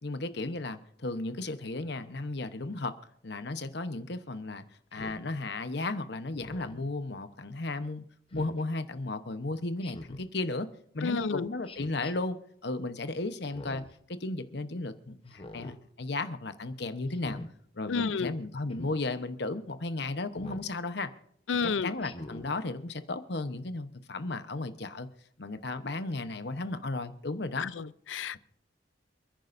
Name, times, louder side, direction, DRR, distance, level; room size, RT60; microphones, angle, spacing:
voice 1, 0.0-2.9 3.2-4.6 4.9-8.0 8.3-10.7 10.9-12.4 12.6-17.4 17.7-21.1 21.6-25.1 25.4-27.7, left 2 dB, 60° left, 1.0 m, -34 dB
Speech synthesizer, 4.9-5.2 6.4-6.9 8.3-8.6 9.8-10.3 11.6-12.1 13.4-14.0 15.3-15.8 17.1-17.5 18.7-19.0 20.4-20.7 22.0-22.5, left 1 dB, 30° left, 0.9 m, -44 dB
voice 2, 11.0-11.5 17.9-18.3 21.5-21.9 27.6-28.4, left 5 dB, 80° left, 0.5 m, -30 dB
28.5 x 10.0 x 2.6 m
head